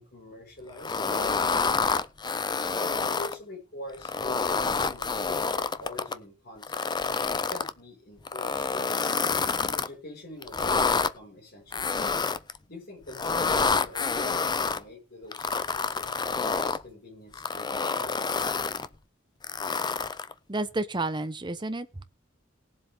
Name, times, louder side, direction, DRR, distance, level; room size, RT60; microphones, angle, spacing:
voice 1, 0.0-2.0 3.0-9.1 9.6-11.9 12.7-18.2, left 2 dB, 55° left, 5.1 m, -45 dB
sound 1, 0.8-3.4 3.9-6.2 6.6-7.7 8.3-9.9 10.4-11.1 11.7-12.6 13.1-14.8 15.3-16.8 17.3-18.9 19.4-20.3, left 4 dB, 20° left, 0.5 m, -28 dB
voice 2, 20.5-21.9, right 2 dB, 25° right, 1.0 m, -30 dB
19.0 x 7.6 x 3.6 m
head